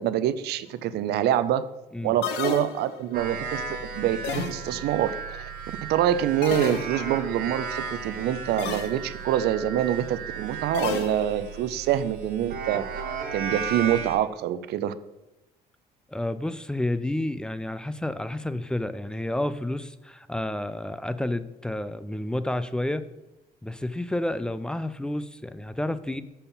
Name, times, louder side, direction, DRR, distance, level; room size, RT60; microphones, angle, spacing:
voice 1, 0.0-1.6 2.0-12.8 13.3-14.9, right 11 dB, 75° right, 14 dB, 0.5 m, -26 dB
sound 1, 2.2-3.2 4.2-5.0 6.4-7.3 8.6-9.1 10.7-11.6, left 6 dB, 85° left, 0.7 m, -32 dB
sound 2, 3.1-14.2, right 6 dB, 55° right, 1.7 m, -35 dB
voice 2, 16.1-23.0 23.6-26.2, left 1 dB, 5° left, 13 dB, 0.4 m, -30 dB
6.9 x 4.4 x 5.4 m, 0.98 s
cardioid pair, 110°, 17 cm